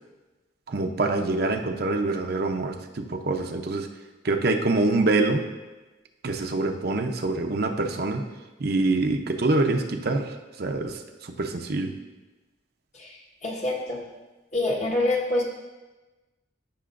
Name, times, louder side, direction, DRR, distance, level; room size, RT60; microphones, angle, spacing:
voice 1, 0.7-3.9 4.2-5.4 6.2-8.2 8.6-10.3 10.6-10.9 11.4-11.9, right 2 dB, 60° right, 4 dB, 0.7 m, -25 dB
voice 2, 12.9-14.0 14.5-15.4, left 2 dB, 40° left, -2 dB, 1.4 m, -26 dB
14.0 x 6.1 x 2.5 m, 1.2 s
head